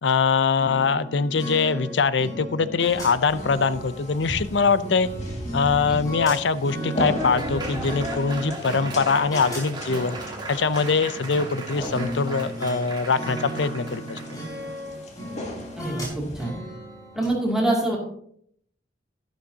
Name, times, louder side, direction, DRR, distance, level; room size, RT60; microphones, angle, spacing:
voice 1, 0.0-5.1 5.5-10.2 10.5-14.2, left 5 dB, 65° left, 15 dB, 0.6 m, -23 dB
sound 1, 0.6-12.8 13.2-17.3, equal, 20° left, 4.9 m, -36 dB
sound 2, 2.9-16.5, equal, 40° left, 2.1 m, -38 dB
Laughter / Applause, 6.5-14.4, right 1 dB, 25° right, 1.7 m, -36 dB
voice 2, 15.8-16.5 17.1-18.0, right 1 dB, 5° right, -3 dB, 2.5 m, -25 dB
13.0 x 11.5 x 2.8 m, 0.67 s
head